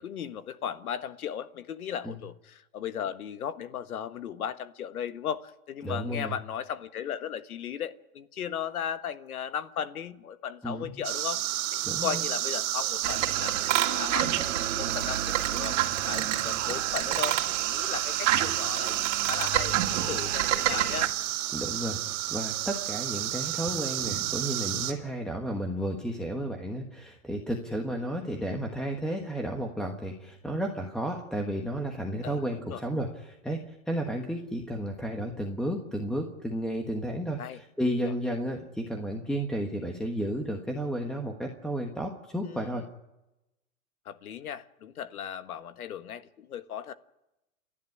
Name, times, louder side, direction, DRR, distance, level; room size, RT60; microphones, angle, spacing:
voice 1, 0.0-11.4 11.7-14.5 14.7-15.8 16.0-21.1 32.2-32.4 32.7-32.8 37.4-37.6 38.0-38.1 42.4-42.8 44.0-46.9, left 8 dB, 85° left, 12 dB, 1.5 m, -36 dB
voice 2, 5.8-6.3 10.6-11.0 11.8-12.2 21.5-42.8, equal, ahead, 2 dB, 1.3 m, -32 dB
sound 1, 11.0-24.9, right 14 dB, 35° right, 3.2 m, -31 dB
sound 2, 13.0-21.1, right 12 dB, 55° right, 2.5 m, -29 dB
30.0 x 11.0 x 9.8 m, 0.95 s
hypercardioid pair, 150°, 43 cm